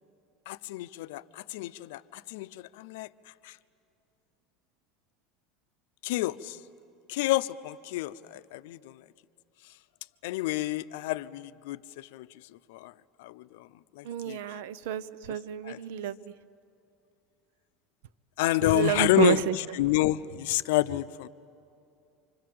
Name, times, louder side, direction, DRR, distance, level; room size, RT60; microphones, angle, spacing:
voice 1, 0.5-3.1 3.4-3.6 6.0-6.6 7.1-9.0 10.2-12.4 12.7-12.9 13.2-13.7 13.9-14.4 15.3-15.8 18.4-21.3, left 16 dB, 75° left, 14 dB, 0.6 m, -29 dB
voice 2, 14.0-16.3 18.6-19.5, right 11 dB, 80° right, 17 dB, 0.7 m, -29 dB
28.5 x 25.5 x 7.6 m, 2.6 s
cardioid pair, 165°, 0 cm